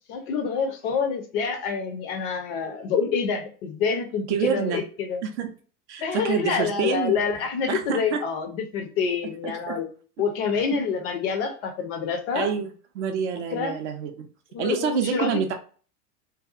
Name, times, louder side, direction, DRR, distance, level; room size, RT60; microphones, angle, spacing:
voice 1, 0.1-5.2 6.0-9.9 10.2-12.5 13.5-13.8 14.5-15.4, left 6 dB, 40° left, 5 dB, 0.5 m, -27 dB
voice 2, 4.3-4.8 5.2-5.5 5.9-7.2 7.7-8.2 9.4-9.7 12.3-12.7 12.9-14.1 14.6-15.5, right 7 dB, 50° right, 5 dB, 0.5 m, -27 dB
2.7 x 2.2 x 2.4 m, 0.40 s
figure-of-eight pair, 85°, 47 cm